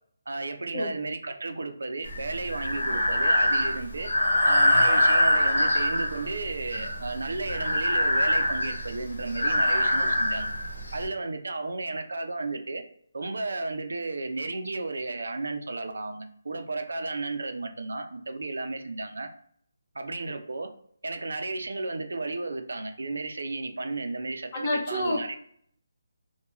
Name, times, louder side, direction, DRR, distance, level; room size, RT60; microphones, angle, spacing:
voice 1, 0.3-4.1 4.4-10.5 10.9-12.8 13.1-19.3 19.9-20.7 21.0-25.4, right 3 dB, 75° right, 6 dB, 0.4 m, -33 dB
Breathing, 2.1-11.1, left 1 dB, 80° left, 0.9 m, -24 dB
voice 2, 24.5-25.4, left 1 dB, 30° left, -2 dB, 0.7 m, -29 dB
2.3 x 2.2 x 2.9 m, 0.62 s
figure-of-eight pair, 160°, 0 cm